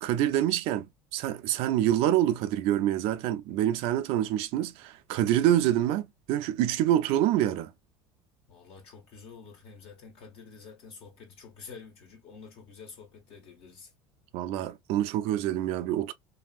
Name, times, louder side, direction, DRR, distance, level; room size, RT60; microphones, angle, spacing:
voice 1, 0.0-7.7 14.3-16.1, right 12 dB, 65° right, 0.5 m, -26 dB
voice 2, 8.5-13.9, left 5 dB, 60° left, 1.4 m, -48 dB
2.9 x 2.7 x 2.4 m
supercardioid pair, 105°, 11 cm